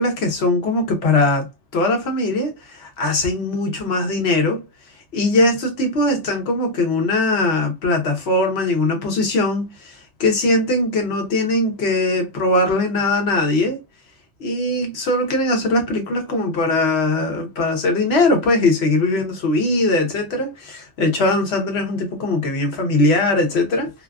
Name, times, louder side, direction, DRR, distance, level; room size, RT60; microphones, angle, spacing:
voice 1, 0.0-1.5 1.7-4.6 5.1-13.8 14.4-23.9, left 2 dB, 65° left, 1.1 m, -20 dB
2.7 x 2.4 x 2.2 m
omnidirectional pair, 1.2 m